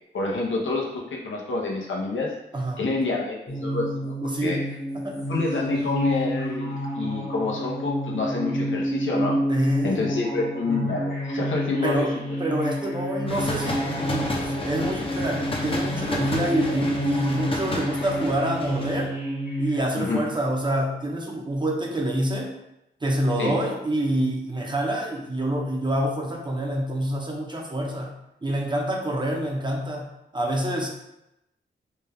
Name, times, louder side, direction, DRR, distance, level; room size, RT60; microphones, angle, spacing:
voice 1, 0.1-2.3 2.8-4.6 5.3-9.4 9.8-12.1 20.0-20.2 23.4-23.5, left 3 dB, 90° left, -2 dB, 0.8 m, -27 dB
sound 1, 3.5-19.8, equal, 55° left, 1.5 m, -29 dB
voice 2, 4.2-4.6 4.9-5.3 9.5-10.0 11.8-12.1 12.4-13.8 14.1-19.1 19.6-22.5 23.0-28.1 28.4-30.1 30.3-30.9, right 1 dB, 25° right, 0 dB, 0.7 m, -26 dB
sound 2, 13.3-19.1, left 2 dB, 30° left, 0.6 m, -31 dB
4.3 x 2.3 x 3.4 m, 0.88 s
wide cardioid pair, 110°, 19 cm